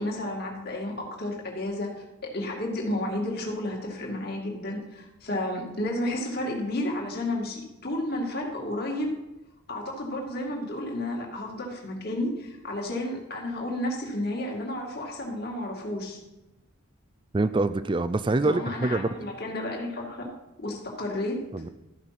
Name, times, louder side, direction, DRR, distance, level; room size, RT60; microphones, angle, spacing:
voice 1, 0.0-1.9 2.2-9.1 9.7-16.2 18.4-20.3 20.6-21.4, left 1 dB, 50° left, 0 dB, 2.2 m, -32 dB
voice 2, 17.3-19.1 21.5-21.7, right 2 dB, 25° right, 14 dB, 0.4 m, -25 dB
13.5 x 5.4 x 5.9 m, 0.97 s
head